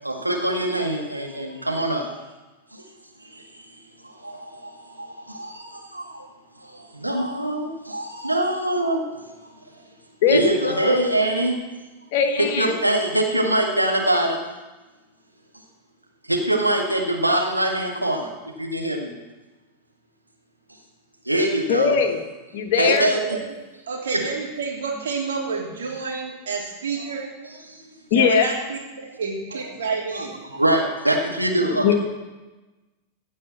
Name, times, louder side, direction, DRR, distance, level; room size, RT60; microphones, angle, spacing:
voice 1, 0.0-2.1 2.7-2.8 3.3-3.5 4.0-6.3 6.6-9.0 9.4-9.5 10.3-11.6 12.4-14.4 16.3-18.3 18.6-19.1 21.3-22.0 22.8-23.4 29.5-29.6 30.1-31.9, right 1 dB, 85° right, 0 dB, 1.8 m, -23 dB
voice 2, 10.2-11.1 12.1-12.8 21.7-22.2 22.5-23.1 28.1-28.5 31.8-31.9, left 7 dB, 50° left, 6 dB, 1.4 m, -21 dB
voice 3, 23.0-23.4 23.9-27.3 28.1-30.4, right 4 dB, 65° right, -2 dB, 3.3 m, -29 dB
15.5 x 5.4 x 8.5 m, 1.2 s
figure-of-eight pair, 90°, 0 cm